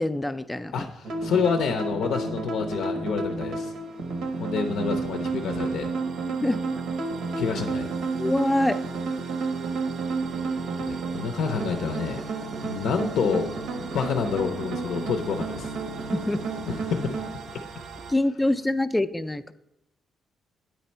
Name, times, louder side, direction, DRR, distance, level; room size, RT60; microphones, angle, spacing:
voice 1, 0.0-0.9 6.3-6.6 8.2-8.8 16.1-16.4 18.1-19.5, left 1 dB, 10° left, 12 dB, 0.3 m, -25 dB
voice 2, 0.7-3.7 4.4-5.9 7.4-7.9 10.8-12.2 12.6-13.5 13.8-15.7 16.7-17.2, left 5 dB, 75° left, 5 dB, 0.5 m, -28 dB
sound 1, 1.0-17.3, right 3 dB, 85° right, 1.0 m, -31 dB
sound 2, 3.0-18.1, right 5 dB, 60° right, 0.5 m, -43 dB
9.1 x 4.1 x 4.3 m, 0.91 s
cardioid pair, 90°, 0 cm